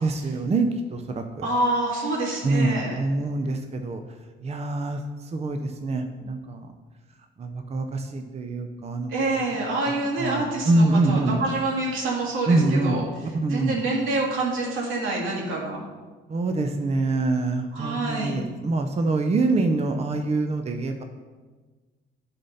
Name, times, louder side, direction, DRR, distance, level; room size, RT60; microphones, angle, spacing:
voice 1, 0.0-1.5 2.4-4.0 4.4-6.7 7.4-9.4 9.9-11.4 12.5-13.1 13.4-13.8 16.3-21.0, right 2 dB, 30° right, 5 dB, 0.7 m, -25 dB
voice 2, 1.4-3.0 9.1-13.0 13.5-15.8 17.7-18.4, right 2 dB, 90° right, -2 dB, 2.3 m, -27 dB
9.8 x 4.2 x 5.6 m, 1.3 s
cardioid pair, 90°, 20 cm